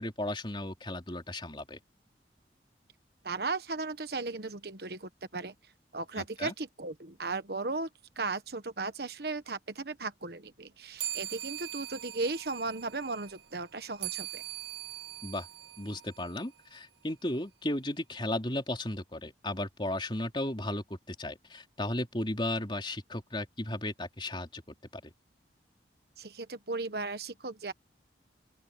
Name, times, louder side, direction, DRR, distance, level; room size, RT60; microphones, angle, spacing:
voice 1, 0.0-1.8 6.2-6.5 15.2-15.5 15.8-24.6 25.0-25.1, left 1 dB, 25° left, 3.4 m, -35 dB
voice 2, 3.2-5.5 5.9-7.9 8.2-14.4 26.2-27.7, right 3 dB, 60° right, 1.3 m, -36 dB
sound 1, 11.0-16.8, right 13 dB, 85° right, 1.6 m, -42 dB
open air
head